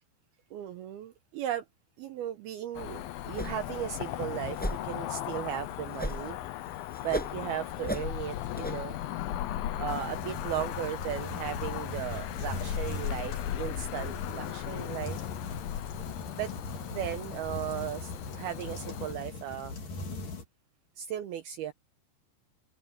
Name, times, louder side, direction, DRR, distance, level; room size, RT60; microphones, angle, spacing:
voice 1, 0.5-1.7 2.0-4.6 4.8-6.4 7.0-9.0 9.8-15.2 16.4-16.5 16.9-19.7 21.0-21.7, right 11 dB, 80° right, 2.3 m, -36 dB
Cricket / Motor vehicle (road), 2.7-19.1, left 12 dB, 80° left, 2.1 m, -37 dB
sound 1, 3.3-3.8 4.0-4.1 4.6-4.8 6.0-6.4 6.7-7.4 7.9-8.1 8.6-8.8, equal, ahead, 7.0 m, -34 dB
sound 2, 9.9-20.4, left 3 dB, 45° left, 5.3 m, -40 dB
open air
omnidirectional pair, 5.6 m